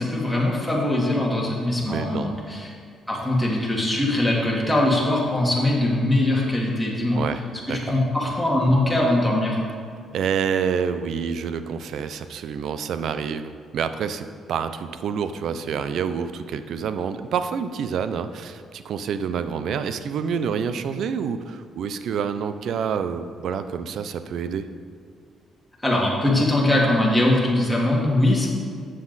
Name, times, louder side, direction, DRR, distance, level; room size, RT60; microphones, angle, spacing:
voice 1, 0.0-2.7 3.1-7.2 7.7-9.6 25.8-28.5, left 1 dB, 5° left, -4 dB, 1.9 m, -21 dB
voice 2, 1.8-2.3 7.1-7.4 7.7-7.8 10.1-24.7, right 7 dB, 70° right, 11 dB, 0.4 m, -28 dB
7.6 x 7.0 x 4.0 m, 2.1 s
cardioid pair, 90°, 0 cm